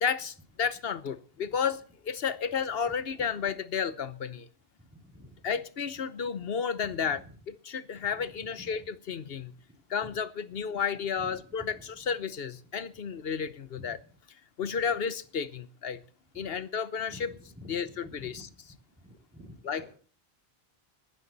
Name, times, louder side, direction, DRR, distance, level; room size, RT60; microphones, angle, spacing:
voice 1, 0.0-4.5 5.4-7.2 7.6-8.8 9.1-9.5 9.9-14.0 14.6-16.0 16.4-17.3 17.7-18.5 19.6-19.9, left 6 dB, 65° left, 1.2 m, -32 dB
voice 2, 4.9-5.4 6.8-7.4 7.9-8.3 8.6-8.7 9.3-9.6 10.0-10.1 11.1-12.1 13.8-13.9 14.7-14.8 16.3-16.5 17.1-18.5 19.0-19.9, equal, 10° right, 6.5 m, -50 dB
19.0 x 13.0 x 4.1 m
omnidirectional pair, 1.1 m